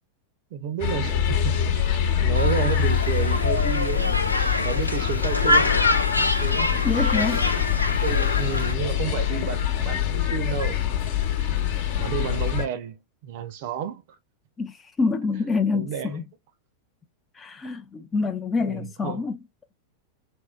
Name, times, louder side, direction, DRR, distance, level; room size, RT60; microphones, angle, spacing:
voice 1, 0.5-1.6 2.2-4.4 4.6-5.8 6.3-6.7 7.7-10.9 12.0-14.0 15.3-16.2 18.6-19.2, right 8 dB, 55° right, 0.6 m, -31 dB
sound 1, 0.8-12.7, left 9 dB, 55° left, 1.0 m, -24 dB
sound 2, 2.3-8.7, left 2 dB, 90° left, 0.4 m, -25 dB
voice 2, 6.8-7.4 14.6-16.2 17.4-19.4, left 4 dB, 20° left, 0.4 m, -26 dB
3.6 x 2.2 x 2.3 m
figure-of-eight pair, 90°, 0 cm